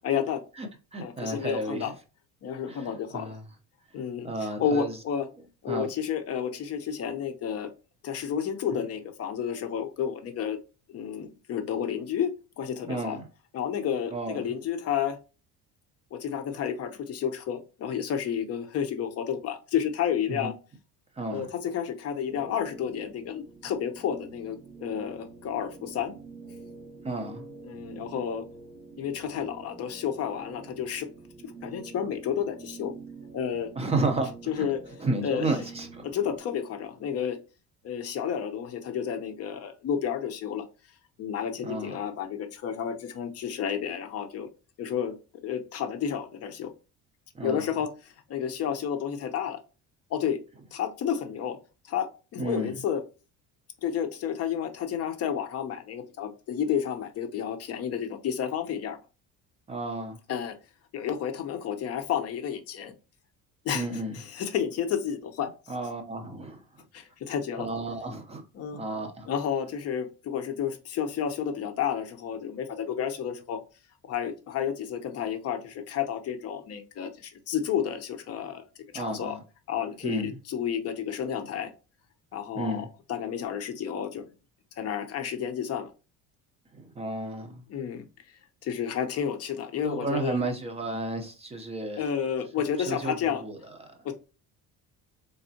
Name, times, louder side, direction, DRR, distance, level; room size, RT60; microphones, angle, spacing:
voice 1, 0.0-0.4 1.0-1.9 2.4-3.4 3.9-5.3 5.6-7.7 8.0-10.6 10.9-13.2 13.5-15.2 16.1-20.5 21.3-26.1 27.6-28.4 29.0-31.1 31.4-32.9 33.3-33.7 34.5-34.8 35.2-35.5 36.0-37.4 37.8-40.6 41.2-44.5 44.8-45.1 45.4-46.7 47.4-49.6 50.1-50.4 50.7-51.6 51.8-52.1 52.3-53.0 53.8-59.0 60.3-60.5 60.9-62.9 63.6-63.9 64.1-65.5 66.9-67.7 68.5-68.8 69.2-73.6 74.1-78.6 78.9-79.3 79.7-81.7 82.3-84.2 84.8-85.9 87.7-88.0 88.6-90.4 92.0-93.4 94.0-94.1, left 8 dB, 45° left, 0.6 m, -31 dB
voice 2, 0.6-1.9 2.7-3.4 4.2-5.0 5.7-5.9 12.8-13.3 14.1-14.5 20.3-20.5 21.2-21.5 27.0-27.5 33.8-34.7 35.0-36.0 41.6-42.0 47.3-47.6 52.4-52.7 59.7-60.2 63.7-64.2 65.7-66.6 67.6-68.4 68.7-69.3 78.9-79.4 80.0-80.4 82.5-82.9 86.7-87.6 89.8-92.1 92.9-94.0, right 2 dB, 20° right, 0.6 m, -32 dB
sound 1, 22.3-36.4, right 4 dB, 55° right, 1.9 m, -46 dB
4.0 x 3.5 x 2.7 m
cardioid pair, 150°, 34 cm